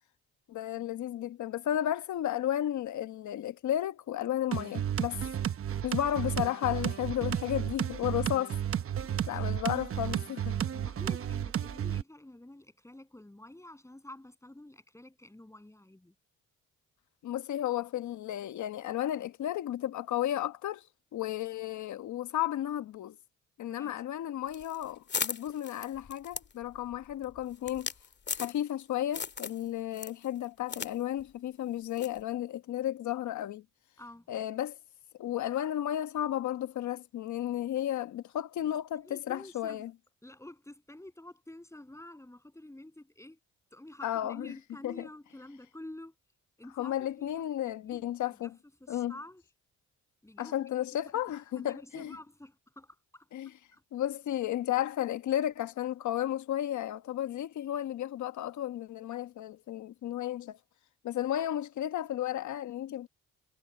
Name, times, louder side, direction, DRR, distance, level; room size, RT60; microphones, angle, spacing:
voice 1, 0.5-5.2 5.8-8.6 9.3-10.6 17.2-23.2 23.6-27.9 28.3-33.6 34.3-34.8 35.2-39.9 44.0-44.6 44.8-45.1 46.8-48.6 48.9-49.1 50.4-52.2 53.3-53.5 53.9-60.6 61.0-63.1, left 12 dB, 70° left, 1.3 m, -33 dB
sound 1, 4.5-12.0, right 9 dB, 45° right, 1.0 m, -33 dB
voice 2, 9.0-9.4 10.7-16.1 23.7-23.9 34.0-34.3 39.0-39.8 40.2-43.4 43.7-46.1 46.6-48.5 48.8-49.4 50.2-50.6 51.0-53.8, left 1 dB, 10° left, 7.8 m, -50 dB
sound 2, 24.5-28.8 29.1-29.6 29.9-30.9 31.2-31.3 32.0-32.2, left 5 dB, 35° left, 2.0 m, -37 dB
cardioid pair, 90°, 30 cm